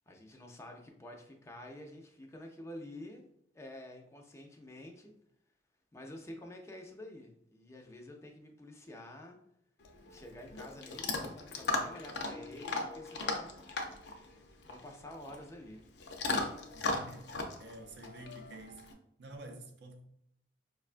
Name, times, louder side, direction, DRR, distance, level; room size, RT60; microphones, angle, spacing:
voice 1, 0.1-3.3 3.5-5.1 5.9-9.4 10.1-13.6 14.6-15.8, left 1 dB, 15° left, 0.4 m, -49 dB
Chewing mastication / Dog, 9.8-18.9, left 3 dB, 70° left, 0.5 m, -38 dB
voice 2, 16.7-20.0, right 1 dB, 75° right, 0.5 m, -50 dB
4.9 x 2.2 x 2.4 m
head